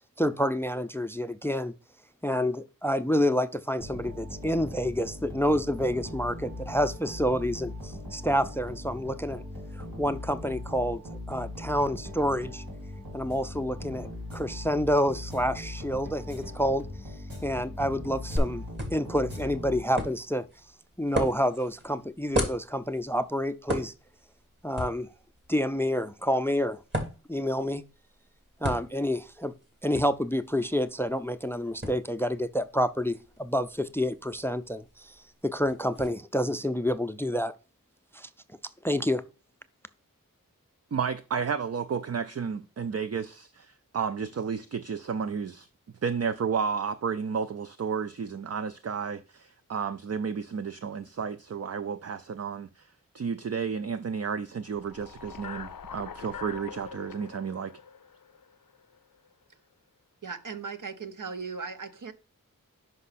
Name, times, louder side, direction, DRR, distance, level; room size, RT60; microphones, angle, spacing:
voice 1, 0.2-1.7 2.2-9.4 9.7-11.0 11.3-12.6 13.1-16.9 17.4-18.6 18.9-20.4 21.0-23.9 24.6-25.1 25.5-26.8 27.3-27.8 28.6-29.5 29.8-35.2 35.4-37.5 38.1-38.3 38.8-39.2, equal, 5° left, 0.4 m, -28 dB
sound 1, 3.8-20.2, left 1 dB, 90° right, 2.3 m, -40 dB
sound 2, 18.4-36.1, right 1 dB, 30° right, 2.2 m, -38 dB
voice 2, 40.9-45.7 46.0-57.7, right 6 dB, 50° right, 0.5 m, -32 dB
sound 3, 54.7-59.0, left 7 dB, 75° left, 0.5 m, -43 dB
voice 3, 60.2-62.1, right 5 dB, 65° right, 0.8 m, -37 dB
5.5 x 5.4 x 4.1 m
wide cardioid pair, 45°, 34 cm